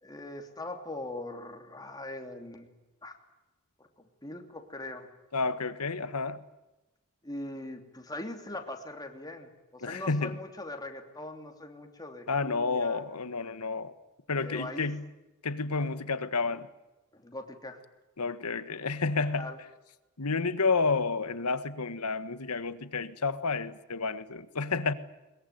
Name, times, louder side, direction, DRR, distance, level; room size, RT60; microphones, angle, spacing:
voice 1, 0.0-2.7 3.0-3.1 4.2-5.1 7.2-13.0 14.4-14.9 17.1-17.8 19.4-19.6, left 2 dB, 15° left, 4 dB, 3.0 m, -41 dB
voice 2, 5.3-6.4 9.8-10.4 12.3-13.9 14.3-15.0 15.4-16.7 18.2-19.5 20.2-24.9, left 4 dB, 85° left, 13 dB, 1.5 m, -30 dB
22.0 x 22.0 x 9.3 m, 1.0 s
head